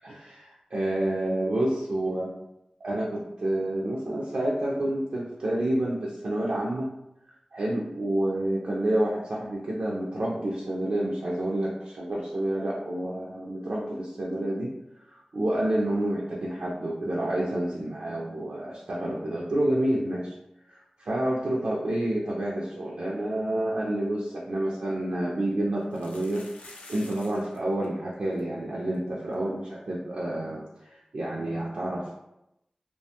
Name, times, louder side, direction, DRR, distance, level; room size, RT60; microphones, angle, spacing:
voice 1, 0.0-2.3 2.8-6.9 7.5-14.7 15.1-20.4 20.7-26.5 26.9-32.1, right 1 dB, 75° right, -5 dB, 0.4 m, -29 dB
sound 1, 24.6-24.7 25.8-27.6 27.8-27.9 28.1-28.4 28.9-29.0 29.3-29.4 31.5-31.6, left 2 dB, 90° left, 0.4 m, -48 dB
2.4 x 2.2 x 2.7 m, 0.87 s
cardioid pair, 45°, 2 cm